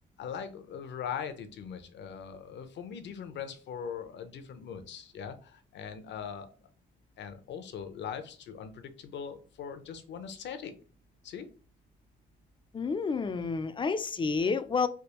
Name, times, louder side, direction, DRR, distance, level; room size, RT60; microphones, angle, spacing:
voice 1, 0.2-6.5 7.2-10.7 11.2-11.5, left 7 dB, 65° left, 0.6 m, -40 dB
voice 2, 12.7-14.9, left 4 dB, 25° left, 0.3 m, -29 dB
3.4 x 2.4 x 2.9 m
cardioid pair, 90°, 20 cm